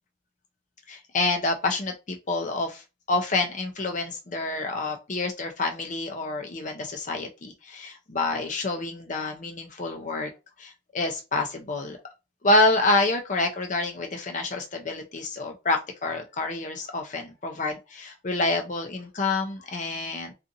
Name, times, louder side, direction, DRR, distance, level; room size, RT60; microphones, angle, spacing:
voice 1, 0.9-2.8 3.1-10.3 10.6-12.0 12.4-20.3, left 2 dB, 40° left, 0.6 m, -27 dB
2.6 x 2.5 x 2.6 m
head